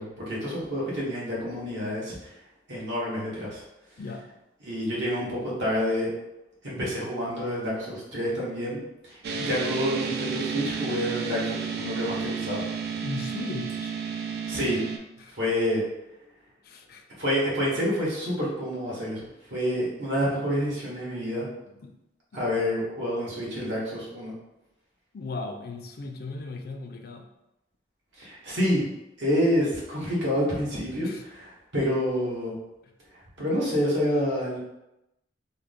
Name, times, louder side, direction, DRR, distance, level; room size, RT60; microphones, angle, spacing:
voice 1, 0.0-2.1 2.7-3.6 4.6-6.1 6.6-9.2 9.5-12.6 14.5-14.8 15.3-15.8 17.2-21.5 22.3-24.3 28.2-28.8 29.2-32.5 33.4-34.6, equal, 80° right, -6 dB, 1.4 m, -28 dB
sound 1, 9.2-15.0, right 6 dB, 60° right, 0.4 m, -32 dB
voice 2, 13.0-13.9 15.2-15.3 16.6-17.0 21.7-21.9 22.3-22.4 25.1-27.3 31.0-31.2, left 3 dB, 55° left, 4 dB, 0.4 m, -37 dB
3.6 x 2.1 x 3.6 m, 0.91 s
head